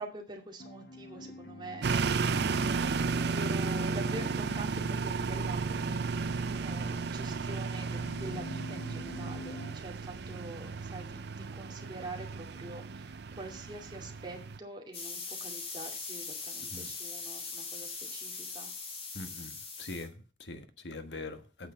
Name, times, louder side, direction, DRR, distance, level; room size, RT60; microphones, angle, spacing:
voice 1, 0.0-1.8 2.8-18.7, right 2 dB, 25° right, 2.4 m, -45 dB
sound 1, 0.6-9.7, left 2 dB, 55° left, 1.5 m, -48 dB
sound 2, 1.8-14.6, right 4 dB, 65° right, 0.6 m, -33 dB
sound 3, 14.9-20.1, left 4 dB, 35° left, 2.3 m, -41 dB
voice 2, 19.1-21.7, left 3 dB, 70° left, 1.4 m, -43 dB
8.8 x 6.6 x 6.8 m
head